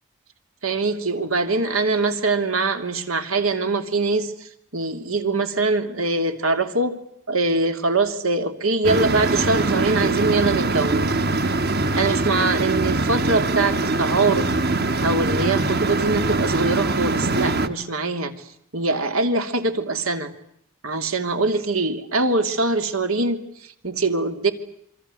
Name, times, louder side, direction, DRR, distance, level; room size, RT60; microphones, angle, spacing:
voice 1, 0.6-6.9 7.3-11.0 11.9-14.5 15.0-18.3 18.7-20.3 20.8-24.5, right 3 dB, 90° right, 8 dB, 3.1 m, -23 dB
sound 1, 8.8-17.7, right 2 dB, 45° right, 1.6 m, -22 dB
28.0 x 24.0 x 7.9 m, 0.72 s
head